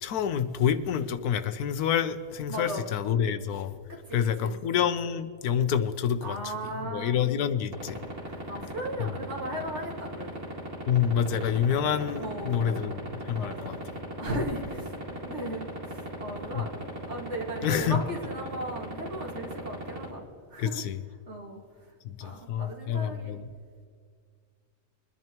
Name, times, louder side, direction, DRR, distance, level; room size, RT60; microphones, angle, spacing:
voice 1, 0.0-3.7 4.1-8.0 9.0-9.1 10.9-13.8 16.5-16.7 17.6-18.0 20.6-21.0 22.0-23.4, left 8 dB, 85° left, 11 dB, 1.2 m, -28 dB
voice 2, 2.5-2.9 3.9-4.6 6.2-7.3 8.2-10.5 11.2-11.4 12.2-13.0 13.3-13.8 14.2-15.0 15.2-20.2 20.5-20.8 21.3-21.6 22.2-23.3, right 1 dB, 50° right, -1 dB, 2.2 m, -37 dB
sound 1, 7.7-20.0, right 2 dB, 80° right, 3.1 m, -36 dB
22.5 x 11.0 x 3.0 m, 2.1 s
omnidirectional pair, 1.6 m